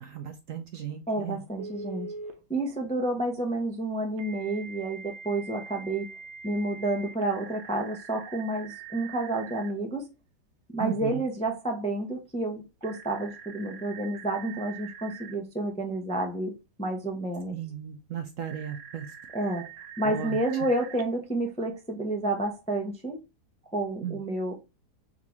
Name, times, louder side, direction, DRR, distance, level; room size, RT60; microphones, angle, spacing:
voice 1, 0.0-1.4 10.8-11.2 17.5-19.1 20.0-20.4 24.0-24.2, right 9 dB, 65° right, 0.9 m, -35 dB
voice 2, 1.1-2.1 2.5-6.1 6.4-10.1 10.7-16.5 16.8-17.6 19.3-19.7 20.0-23.2 23.7-24.5, right 2 dB, 5° left, 0.5 m, -30 dB
Telephone, 1.6-2.3 4.2-9.7 12.8-15.4 18.5-21.0, right 6 dB, 80° right, 1.3 m, -44 dB
3.7 x 3.6 x 3.0 m
omnidirectional pair, 1.8 m